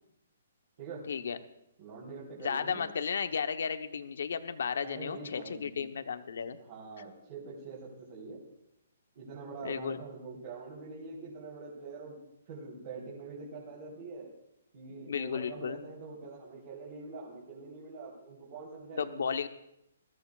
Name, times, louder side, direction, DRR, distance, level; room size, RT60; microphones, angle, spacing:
voice 1, 1.1-1.4 2.4-6.6 9.6-10.0 15.1-15.8 19.0-19.5, left 6 dB, 70° left, 9 dB, 0.9 m, -34 dB
voice 2, 1.8-2.9 4.8-5.9 6.6-8.4 9.2-12.2 12.5-14.3 14.7-19.2, right 3 dB, 40° right, -5 dB, 3.6 m, -44 dB
21.5 x 14.0 x 2.4 m, 0.83 s
hypercardioid pair, 165°, 0 cm